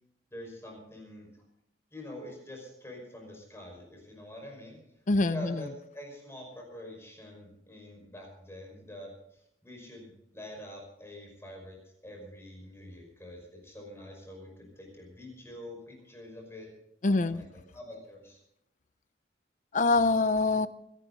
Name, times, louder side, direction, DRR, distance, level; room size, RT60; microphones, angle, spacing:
voice 1, 0.3-1.3 1.9-4.8 5.2-5.7 5.9-11.8 12.0-16.7 17.1-18.4, left 1 dB, 15° left, 1 dB, 5.5 m, -46 dB
voice 2, 5.1-5.6 17.0-17.4 19.7-20.7, left 3 dB, 45° left, 15 dB, 0.6 m, -25 dB
24.5 x 11.5 x 4.0 m, 0.77 s
head